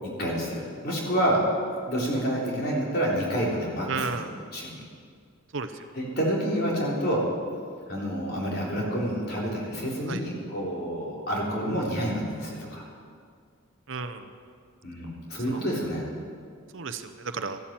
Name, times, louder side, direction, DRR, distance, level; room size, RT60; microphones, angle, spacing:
voice 1, 0.0-1.4 1.9-4.2 4.5-4.8 5.9-7.2 7.9-12.8 14.8-16.1, equal, 45° left, -3 dB, 3.6 m, -28 dB
voice 2, 3.9-4.3 5.5-5.7 10.1-10.2 13.9-14.3 15.5-15.6 16.7-17.6, right 4 dB, 60° right, 9 dB, 0.8 m, -32 dB
14.0 x 11.5 x 7.5 m, 2.2 s
head